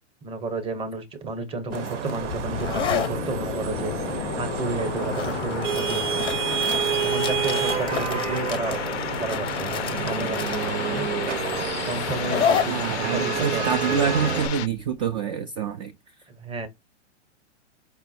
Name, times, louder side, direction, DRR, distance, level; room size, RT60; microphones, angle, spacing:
voice 1, 0.2-6.2 7.0-8.8 9.2-11.1 11.9-12.8 13.1-14.1 16.3-16.7, right 3 dB, 15° right, 0.8 m, -32 dB
sound 1, 1.7-15.1, left 7 dB, 15° left, 0.6 m, -32 dB
Vehicle horn car horn honking / Traffic noise roadway noise, 1.7-14.5, right 8 dB, 75° right, 0.8 m, -29 dB
sound 2, 2.2-14.7, left 13 dB, 65° left, 0.5 m, -32 dB
voice 2, 12.7-16.0, right 7 dB, 35° right, 0.5 m, -26 dB
4.7 x 2.0 x 4.1 m
hypercardioid pair, 130°, 36 cm